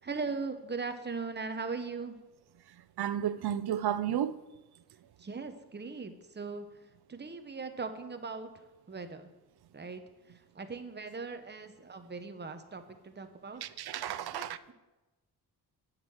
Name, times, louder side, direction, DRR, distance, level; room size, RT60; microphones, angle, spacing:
voice 1, 0.0-2.2 5.2-6.7 7.1-8.5 8.9-9.3 9.7-10.0 10.3-13.6 14.3-14.7, right 4 dB, 25° right, 0.9 m, -39 dB
voice 2, 3.0-4.4 13.6-14.6, right 10 dB, 75° right, 0.6 m, -32 dB
11.0 x 6.5 x 7.8 m
wide cardioid pair, 150°, 39 cm